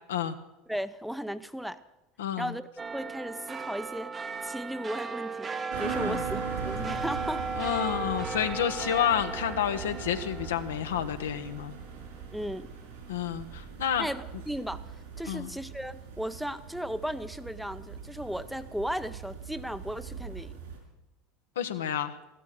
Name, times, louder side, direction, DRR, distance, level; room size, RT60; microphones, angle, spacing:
voice 1, 0.7-1.8 2.4-4.1 4.4-7.5 12.3-12.7 14.0-14.8 15.2-20.6, equal, ahead, 12 dB, 0.7 m, -36 dB
voice 2, 2.2-2.5 6.0-6.2 7.5-11.8 13.1-14.1 15.3-15.5 21.6-22.2, left 9 dB, 80° left, 8 dB, 1.0 m, -30 dB
sound 1, 2.8-13.5 14.0-14.1, right 4 dB, 30° right, 1.0 m, -37 dB
sound 2, 5.7-20.8, right 6 dB, 70° right, 5.6 m, -41 dB
14.5 x 12.5 x 6.7 m, 0.97 s
hypercardioid pair, 80°, 0 cm